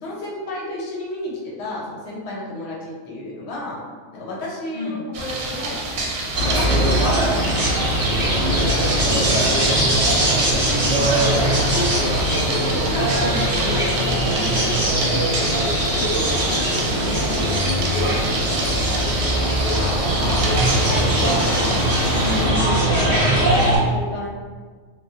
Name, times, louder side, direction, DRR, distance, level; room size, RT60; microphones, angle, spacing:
voice 1, 0.0-3.8 4.1-5.8 6.5-7.1 9.5-13.2 13.5-15.5 15.9-21.5 22.8-24.3, left 1 dB, 60° left, -4 dB, 0.8 m, -33 dB
sound 1, 5.1-22.5, right 2 dB, 90° right, 1.0 m, -28 dB
sound 2, 6.3-23.8, right 1 dB, 25° right, 0.6 m, -20 dB
voice 2, 9.0-9.4 13.2-13.4 20.2-20.5 21.1-21.3 22.1-23.1, left 2 dB, 90° left, -7 dB, 0.4 m, -29 dB
3.0 x 2.2 x 2.7 m, 1.6 s
omnidirectional pair, 1.4 m